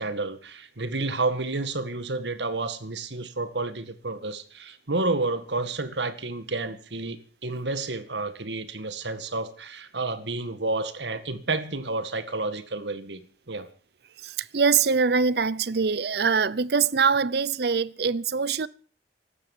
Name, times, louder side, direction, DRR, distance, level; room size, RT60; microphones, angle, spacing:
voice 1, 0.0-13.7, right 3 dB, 80° right, 1.9 m, -30 dB
voice 2, 14.2-18.7, right 5 dB, 65° right, 0.7 m, -23 dB
16.0 x 12.5 x 7.2 m
head